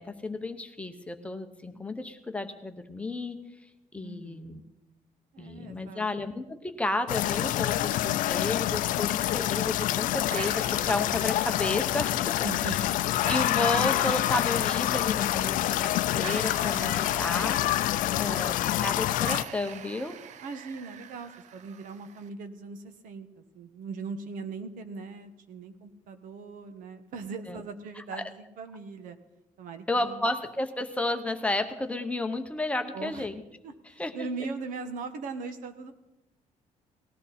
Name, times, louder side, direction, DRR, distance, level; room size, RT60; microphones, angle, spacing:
voice 1, 0.0-3.4 3.9-4.6 5.4-12.3 12.6-12.8 13.3-17.6 18.2-18.5 18.8-20.2 27.5-27.6 28.1-28.2 29.9-33.4 34.0-34.1, left 2 dB, 10° left, 7 dB, 0.8 m, -32 dB
voice 2, 4.0-4.6 5.3-6.1 8.7-8.8 12.4-13.0 18.0-18.5 20.4-29.2 29.6-30.2 32.9-33.3 33.6-35.9, right 4 dB, 75° right, 8 dB, 1.4 m, -40 dB
sound 1, 7.1-19.4, left 14 dB, 75° left, 0.5 m, -27 dB
sound 2, 10.3-22.3, right 9 dB, 60° right, 0.6 m, -45 dB
18.5 x 14.5 x 4.3 m, 0.94 s
cardioid pair, 180°, 14 cm